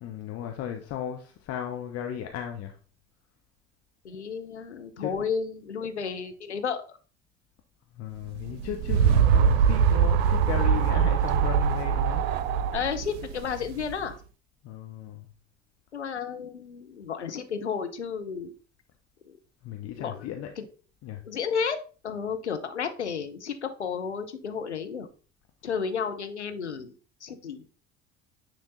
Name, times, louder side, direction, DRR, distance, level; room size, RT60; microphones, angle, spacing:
voice 1, 0.0-2.8 5.0-5.2 7.9-12.3 14.6-15.3 19.6-20.5 21.0-21.2, left 10 dB, 45° left, 0.9 m, -35 dB
voice 2, 4.0-6.8 12.7-14.2 15.9-18.5 19.3-19.4 20.0-20.3 20.6-20.7 21.3-21.8 22.0-25.1 25.6-26.9 27.2-27.6, left 6 dB, 85° left, 0.7 m, -32 dB
sound 1, 8.4-14.0, right 7 dB, 65° right, 0.6 m, -23 dB
9.6 x 3.3 x 3.9 m
figure-of-eight pair, 55°, 33 cm